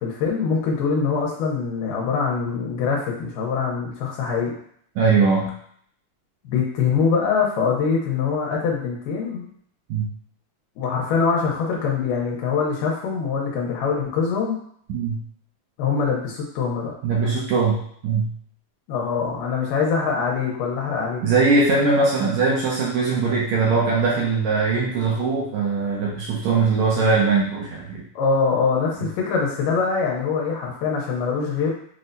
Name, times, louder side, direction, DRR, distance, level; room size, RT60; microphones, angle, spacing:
voice 1, 0.0-4.5 6.4-9.5 10.8-14.6 15.8-16.9 18.9-21.2 28.2-31.7, left 5 dB, 90° left, -2 dB, 2.3 m, -23 dB
voice 2, 5.0-5.5 9.9-10.1 14.9-15.2 17.0-18.3 21.2-28.0, right 4 dB, 80° right, -4 dB, 1.7 m, -21 dB
6.1 x 2.1 x 2.6 m, 0.64 s
omnidirectional pair, 3.8 m